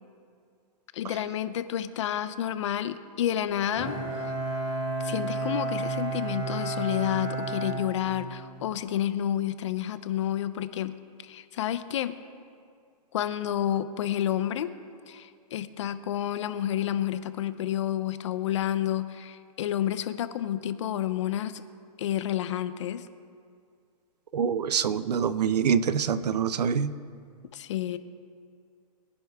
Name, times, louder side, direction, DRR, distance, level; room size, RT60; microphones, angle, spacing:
voice 1, 0.9-4.0 5.0-10.9 11.2-12.2 13.1-14.7 15.1-21.6 22.0-23.1 27.5-28.0, left 11 dB, 50° left, 13 dB, 0.7 m, -30 dB
Bowed string instrument, 3.8-8.6, right 3 dB, 20° right, 3.1 m, -32 dB
voice 2, 24.3-26.9, right 7 dB, 85° right, 15 dB, 0.8 m, -25 dB
22.0 x 10.5 x 3.6 m, 2.3 s
hypercardioid pair, 165°, 20 cm